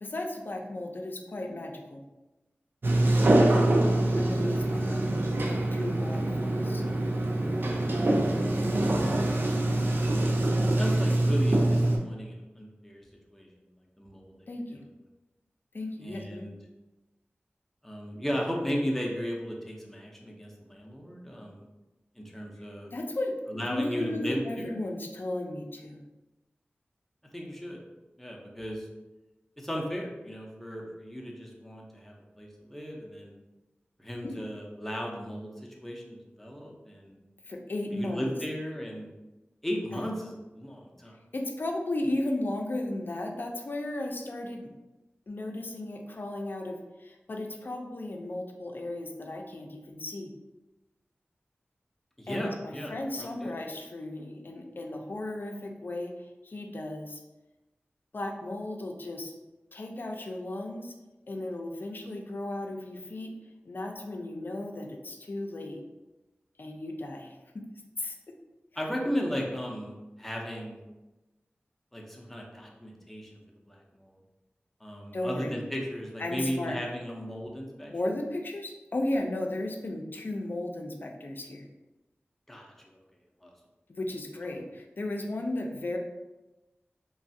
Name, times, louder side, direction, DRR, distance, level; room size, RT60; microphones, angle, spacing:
voice 1, 0.0-2.0 4.2-6.8 10.1-10.4 14.5-14.8 15.7-16.5 22.9-23.4 23.6-26.0 34.2-34.4 37.4-38.3 39.9-40.0 41.3-44.7 45.3-50.3 52.3-56.1 56.4-57.2 58.1-59.3 59.7-60.9 61.3-63.3 63.7-65.8 66.6-67.7 68.0-68.2 75.1-75.6 76.2-76.7 77.9-81.7 83.9-86.0, left 1 dB, 55° left, 2 dB, 0.4 m, -35 dB
Sliding door, 2.8-12.0, right 1 dB, 60° right, 0.4 m, -25 dB
voice 2, 10.8-13.0 13.3-13.5 14.0-14.4 14.7-14.8 16.0-16.5 17.8-21.7 22.2-22.9 23.5-24.8 27.3-27.8 28.2-28.9 29.6-33.4 34.0-35.5 35.8-37.2 37.9-39.1 39.6-41.1 52.2-52.9 53.2-53.6 68.8-70.8 71.9-73.4 73.7-74.2 74.8-77.9 82.5-82.9 83.4-83.5, equal, 5° left, -1 dB, 0.6 m, -36 dB
3.1 x 2.3 x 2.7 m, 1.1 s
wide cardioid pair, 60°, 4 cm